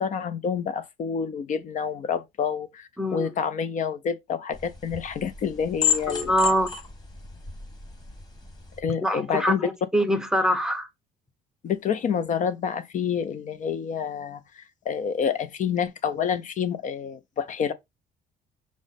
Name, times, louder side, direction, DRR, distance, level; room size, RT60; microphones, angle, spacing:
voice 1, 0.0-6.4 8.8-9.6 11.6-17.7, left 7 dB, 50° left, 0.5 m, -28 dB
voice 2, 3.0-3.3 6.1-6.7 9.0-10.9, equal, 5° right, 0.7 m, -24 dB
sound 1, 4.5-8.8, left 8 dB, 25° left, 1.5 m, -32 dB
6.1 x 2.1 x 4.0 m
cardioid pair, 110°, 17 cm